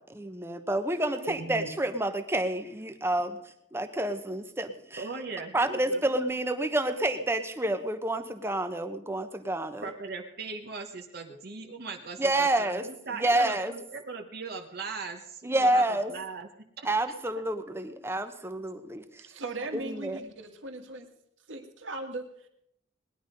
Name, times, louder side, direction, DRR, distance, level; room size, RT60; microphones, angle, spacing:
voice 1, 0.0-3.4 3.7-5.1 5.5-9.9 11.3-11.4 12.2-13.7 15.4-16.1 16.8-19.2 19.7-20.2, right 1 dB, 10° right, 9 dB, 0.9 m, -29 dB
voice 2, 1.3-1.7 5.0-6.0 9.8-15.8 16.1-16.5 16.8-16.9, right 4 dB, 50° right, 3 dB, 1.2 m, -39 dB
voice 3, 19.2-21.1 21.5-22.5, right 2 dB, 75° right, 5 dB, 2.0 m, -38 dB
19.5 x 11.0 x 5.2 m, 0.76 s
head